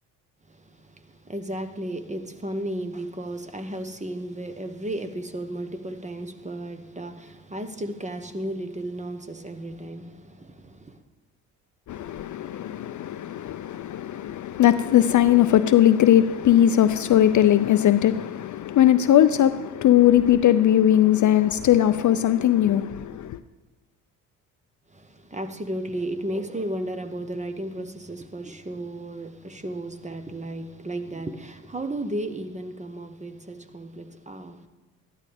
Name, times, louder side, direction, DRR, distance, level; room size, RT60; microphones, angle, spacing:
voice 1, 0.5-11.0 24.9-34.7, right 1 dB, 15° right, 1.1 m, -34 dB
voice 2, 11.9-23.4, left 11 dB, 45° left, 0.5 m, -19 dB
13.5 x 11.5 x 3.5 m
hypercardioid pair, 60°, 44 cm